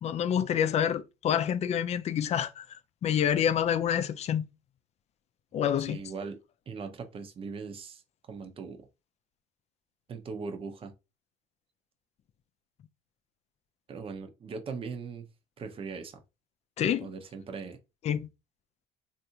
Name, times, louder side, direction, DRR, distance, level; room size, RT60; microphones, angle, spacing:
voice 1, 0.0-2.7 3.0-4.5 5.5-6.0 16.8-17.1 18.0-18.3, left 9 dB, 45° left, 0.4 m, -27 dB
voice 2, 5.9-6.4 6.7-8.0 8.3-8.9 10.1-10.9 13.9-15.3 15.6-16.2 17.0-17.8, right 5 dB, 35° right, 0.7 m, -39 dB
3.4 x 2.5 x 2.8 m
supercardioid pair, 80°, 15 cm